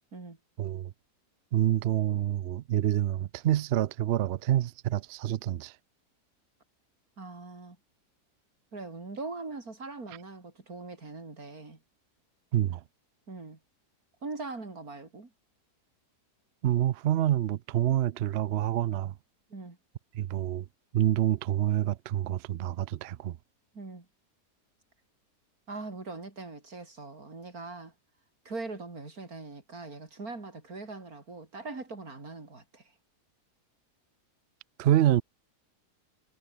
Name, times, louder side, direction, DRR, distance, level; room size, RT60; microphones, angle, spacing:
voice 1, 0.6-0.9 1.5-5.7 12.5-12.8 16.6-19.1 20.1-20.7 20.9-23.4 34.8-35.2, right 12 dB, 80° right, 0.6 m, -27 dB
voice 2, 7.2-7.8 8.7-11.8 13.3-13.6 14.2-15.3 19.5-19.8 23.7-24.1 25.7-27.9 28.4-32.9, right 3 dB, 60° right, 4.4 m, -41 dB
omnidirectional pair, 1.7 m